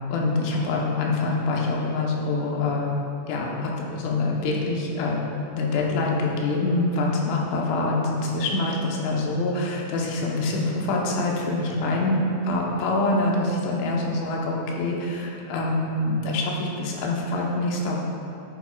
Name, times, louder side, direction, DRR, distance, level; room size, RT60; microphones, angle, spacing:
voice 1, 0.1-3.0 3.3-5.2 5.5-18.0, left 2 dB, 80° left, -2 dB, 3.5 m, -25 dB
11.0 x 9.4 x 2.3 m, 2.6 s
omnidirectional pair, 5.5 m